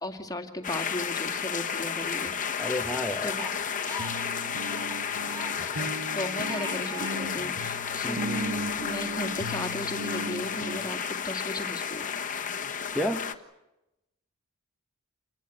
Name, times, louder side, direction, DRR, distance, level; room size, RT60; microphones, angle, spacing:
voice 1, 0.0-2.3 3.2-3.6 5.8-5.9 6.1-8.2 8.8-12.1, left 1 dB, 15° left, 5 dB, 2.4 m, -36 dB
sound 1, 0.6-13.3, left 7 dB, 35° left, 1.5 m, -32 dB
sound 2, 2.2-2.3 2.8-2.9 3.4-3.5 4.0-10.8, right 1 dB, 60° right, 1.8 m, -38 dB
voice 2, 2.6-3.3 8.0-8.8 12.9-13.3, left 1 dB, ahead, -1 dB, 1.4 m, -31 dB
Crying sobbing, 3.3-7.2 7.6-8.6, right 2 dB, 20° right, 6.1 m, -43 dB
28.0 x 20.5 x 8.1 m, 0.92 s
head